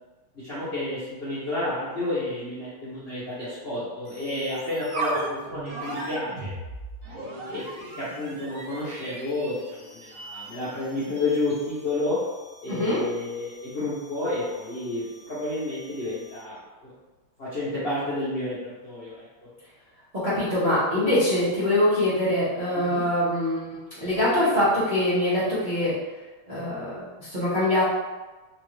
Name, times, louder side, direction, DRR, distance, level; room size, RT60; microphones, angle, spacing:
voice 1, 0.3-6.5 7.1-9.6 9.9-12.2 12.6-16.9 17.4-19.3 22.7-23.0, left 2 dB, 45° left, -13 dB, 0.9 m, -31 dB
sound 1, 4.0-16.5, right 2 dB, 90° right, 0.7 m, -38 dB
voice 2, 12.7-13.0 20.2-25.9 26.5-27.8, left 1 dB, 35° right, -12 dB, 0.8 m, -24 dB
3.8 x 2.6 x 3.1 m, 1.2 s
omnidirectional pair, 2.4 m